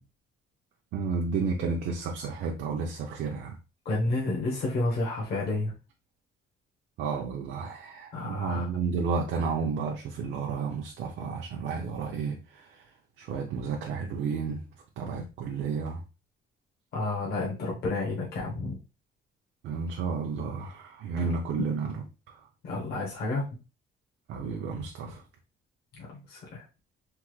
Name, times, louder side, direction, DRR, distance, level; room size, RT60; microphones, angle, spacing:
voice 1, 0.9-3.5 7.0-12.8 13.2-14.6 15.0-16.0 19.6-22.4 24.3-25.2, right 5 dB, 70° right, 0.5 m, -32 dB
voice 2, 3.8-5.7 8.1-8.7 16.9-18.8 21.2-21.3 22.6-23.4 25.9-26.6, left 2 dB, 55° left, 0.9 m, -30 dB
3.4 x 2.0 x 3.1 m
cardioid pair, 155°, 19 cm